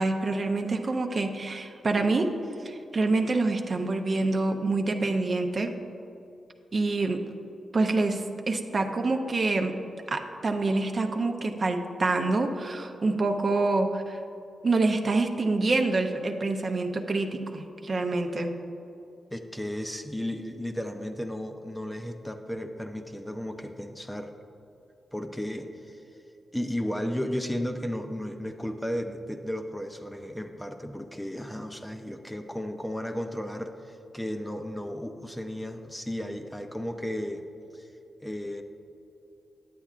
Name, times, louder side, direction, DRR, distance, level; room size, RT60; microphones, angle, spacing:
voice 1, 0.0-2.3 2.6-5.7 6.7-7.2 7.7-9.7 10.1-14.2 14.6-18.5, right 3 dB, 45° right, 4 dB, 0.6 m, -26 dB
voice 2, 19.3-24.4 25.1-26.1 26.5-37.4 37.7-37.9 38.2-38.6, equal, 5° left, 5 dB, 0.5 m, -34 dB
10.0 x 8.0 x 2.5 m, 2.8 s
cardioid pair, 70°, 0 cm